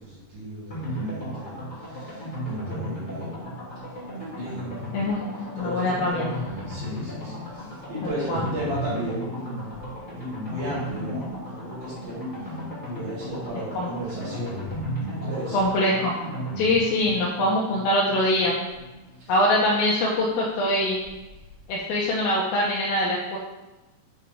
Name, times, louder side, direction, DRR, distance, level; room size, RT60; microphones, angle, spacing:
voice 1, 0.0-3.4 3.9-4.0 4.4-5.0 5.3-9.8 10.1-15.6 19.1-19.3, right 1 dB, 60° right, -13 dB, 3.8 m, -35 dB
sound 1, 0.7-19.3 19.6-19.7 19.9-20.0, equal, 25° left, 1.9 m, -35 dB
voice 2, 4.9-5.2 5.5-6.3 8.3-8.4 13.8-13.9 15.5-16.1 16.6-18.6 19.3-21.0 21.7-23.4, left 1 dB, 75° left, -4 dB, 2.3 m, -23 dB
7.8 x 4.9 x 3.4 m, 1.1 s
omnidirectional pair, 4.9 m